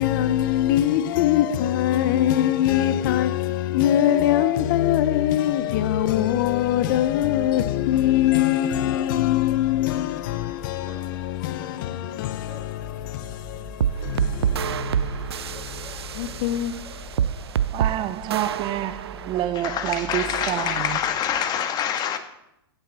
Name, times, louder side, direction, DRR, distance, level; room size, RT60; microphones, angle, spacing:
voice 1, 0.0-16.9, left 12 dB, 55° left, 0.8 m, -23 dB
sound 1, 5.4-21.5, left 1 dB, 5° right, 5.9 m, -45 dB
sound 2, 13.8-19.4, right 9 dB, 80° right, 0.6 m, -27 dB
voice 2, 17.7-21.0, right 13 dB, 35° right, 0.6 m, -27 dB
voice 3, 19.5-22.2, left 9 dB, 30° left, 1.5 m, -26 dB
16.0 x 8.9 x 4.2 m
hypercardioid pair, 110°, 13 cm